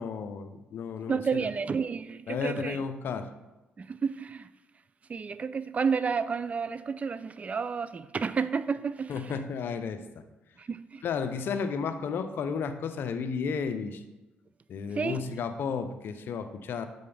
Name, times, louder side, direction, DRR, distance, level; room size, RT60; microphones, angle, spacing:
voice 1, 0.0-1.5 2.3-3.3 9.1-10.2 11.0-14.0 14.7-16.9, left 6 dB, 65° left, 9 dB, 0.6 m, -33 dB
voice 2, 1.1-2.8 3.8-4.5 5.1-9.4 10.6-11.0 14.9-15.2, right 5 dB, 35° right, 14 dB, 0.4 m, -31 dB
7.6 x 5.3 x 3.4 m, 1.0 s
supercardioid pair, 65°, 4 cm